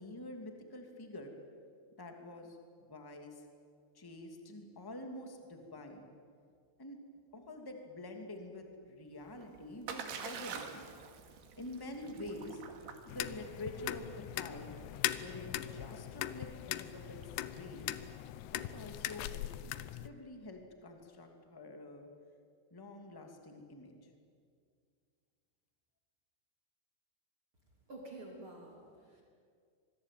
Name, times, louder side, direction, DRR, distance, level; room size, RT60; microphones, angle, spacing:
voice 1, 0.0-1.3 2.0-2.6 2.9-3.4 3.9-6.1 6.8-7.0 7.3-10.9 11.6-12.6 13.0-14.0 14.3-14.7 15.1-17.2 17.5-18.0 18.5-19.4 19.7-22.1 22.7-24.1, left 1 dB, 10° left, 3 dB, 1.3 m, -47 dB
Splash splatter, 9.2-19.0, right 6 dB, 70° right, 4.0 m, -49 dB
sound 1, 13.1-20.1, left 14 dB, 80° left, 2.8 m, -40 dB
voice 2, 27.9-29.2, right 2 dB, 30° right, -2 dB, 3.8 m, -49 dB
25.5 x 21.5 x 9.2 m, 2.2 s
omnidirectional pair, 5.0 m